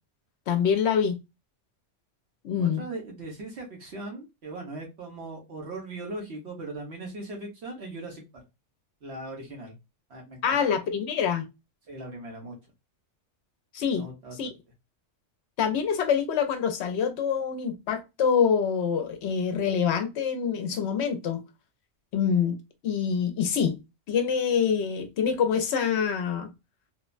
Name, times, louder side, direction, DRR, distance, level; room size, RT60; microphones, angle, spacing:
voice 1, 0.5-1.2 2.4-2.8 10.4-11.5 13.7-14.0 14.4-14.5 15.6-21.4 22.1-22.6 22.8-23.8 24.1-26.5, left 7 dB, 70° left, 0.8 m, -25 dB
voice 2, 2.6-8.2 9.0-9.8 10.1-10.6 11.9-12.6 14.0-14.4, right 2 dB, 60° right, 1.3 m, -39 dB
3.2 x 2.1 x 2.3 m
omnidirectional pair, 1.3 m